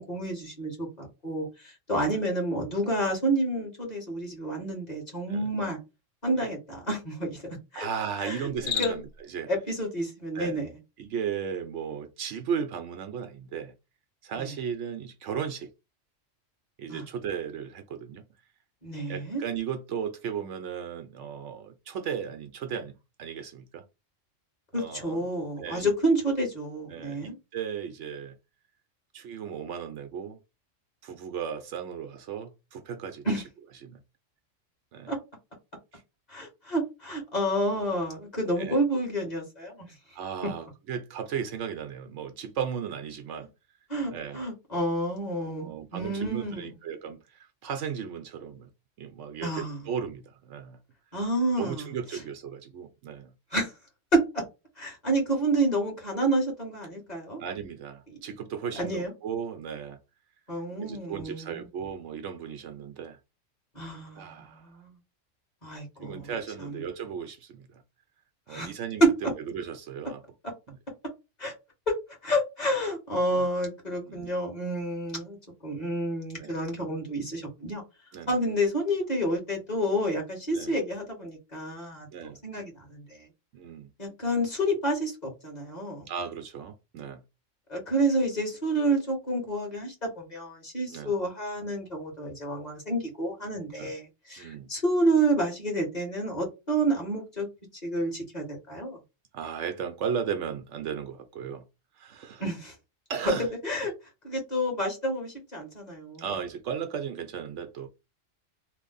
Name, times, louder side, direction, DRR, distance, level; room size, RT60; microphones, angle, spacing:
voice 1, 0.0-5.8 6.2-7.9 8.2-8.5 8.8-9.0 9.5-10.7 14.4-14.5 16.9-17.0 18.8-19.4 24.7-27.4 33.2-33.4 35.1-35.2 36.3-39.9 40.4-40.5 43.9-46.7 49.4-49.8 51.1-51.9 53.5-53.7 54.1-54.4 54.8-57.4 58.7-59.1 60.5-61.6 63.7-65.0 65.6-66.3 66.6-66.8 68.5-68.7 69.0-69.1 71.4-71.5 71.9-72.0 72.2-75.4 75.6-77.8 78.3-83.3 84.0-86.1 87.7-97.5 97.8-99.0 102.4-102.7 103.2-103.9 104.2-106.2, right 1 dB, 35° left, 1.5 m, -29 dB
voice 2, 7.7-9.5 10.3-10.6 11.0-13.7 14.2-15.7 16.8-18.2 19.1-23.8 24.8-25.2 25.6-25.9 26.9-28.4 29.1-30.4 31.0-33.4 33.8-34.0 34.9-35.1 35.9-36.0 38.6-38.8 40.1-43.5 44.1-44.4 45.6-48.7 49.0-50.8 51.6-53.3 57.4-60.0 60.8-63.2 64.1-64.8 66.0-67.8 68.5-70.2 73.3-73.5 74.1-74.3 76.4-76.6 78.1-78.3 80.5-80.7 82.1-82.4 83.5-83.9 86.1-87.2 90.9-91.1 93.7-93.9 94.4-94.7 99.3-101.6 101.9-102.4 103.1-103.5 106.2-107.9, right 7 dB, 70° right, 0.9 m, -36 dB
Cricket, 8.5-9.2, left 9 dB, 70° left, 0.9 m, -33 dB
3.1 x 2.0 x 3.9 m
omnidirectional pair, 1.3 m